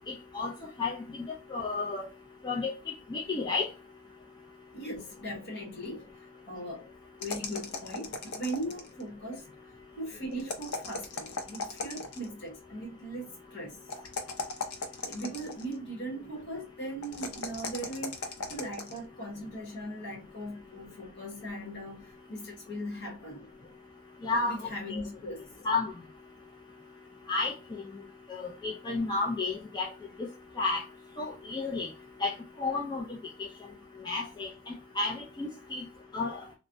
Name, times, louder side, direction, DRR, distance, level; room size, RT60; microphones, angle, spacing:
voice 1, 0.1-0.5 0.8-1.0 1.5-2.1 2.4-2.7 3.1-3.7 24.2-25.0 25.6-25.9 27.3-27.5 28.3-29.9 30.2-30.3 30.6-30.8 31.2-31.9 32.2-32.3 32.6-33.0 34.0-35.9 36.1-36.4, left 3 dB, 20° left, 0.3 m, -31 dB
voice 2, 4.7-6.0 6.5-6.8 7.2-9.4 10.0-14.1 15.0-18.2 18.5-23.5 24.5-25.4, right 1 dB, 50° left, 1.1 m, -39 dB
sound 1, 7.2-9.0 10.4-12.3 13.9-15.7 17.0-19.0, left 3 dB, 80° left, 0.5 m, -37 dB
3.2 x 2.0 x 2.5 m
head